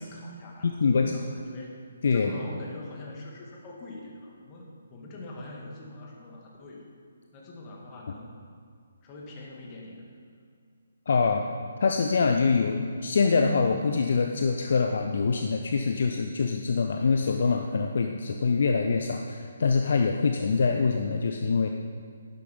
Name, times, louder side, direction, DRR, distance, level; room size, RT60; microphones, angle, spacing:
voice 1, 0.0-1.8 2.1-6.9 7.3-8.3 9.0-10.0, left 2 dB, 25° left, -2 dB, 2.1 m, -43 dB
voice 2, 0.6-1.1 2.0-2.3 11.1-11.4 11.8-21.7, left 4 dB, 50° left, 4 dB, 0.6 m, -24 dB
11.5 x 10.5 x 5.3 m, 2.2 s
figure-of-eight pair, 135°, 0 cm